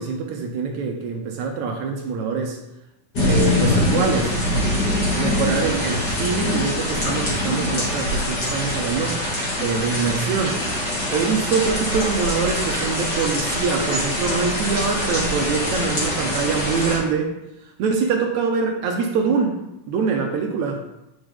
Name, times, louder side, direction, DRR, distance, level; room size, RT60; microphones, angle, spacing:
voice 1, 0.0-2.6 3.2-4.4 5.2-9.2 9.6-10.6 11.1-17.3 17.8-19.6 19.9-20.8, right 5 dB, 75° right, 2 dB, 2.0 m, -24 dB
sound 1, 3.1-17.0, left 1 dB, 35° left, 2.2 m, -23 dB
9.0 x 5.1 x 3.5 m, 0.91 s
omnidirectional pair, 3.7 m